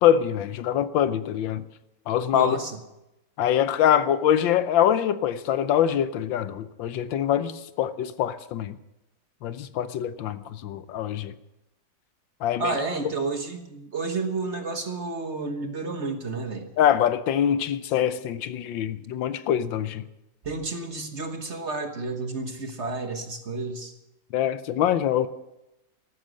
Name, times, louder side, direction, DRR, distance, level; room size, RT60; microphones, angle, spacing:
voice 1, 0.0-1.6 2.1-2.6 3.4-8.8 9.4-11.3 12.4-12.7 16.8-20.0 24.3-25.3, left 10 dB, 75° left, 1.4 m, -24 dB
voice 2, 2.3-2.8 12.6-16.7 20.4-23.9, right 3 dB, 40° right, 1.3 m, -31 dB
14.0 x 13.0 x 6.4 m
omnidirectional pair, 2.1 m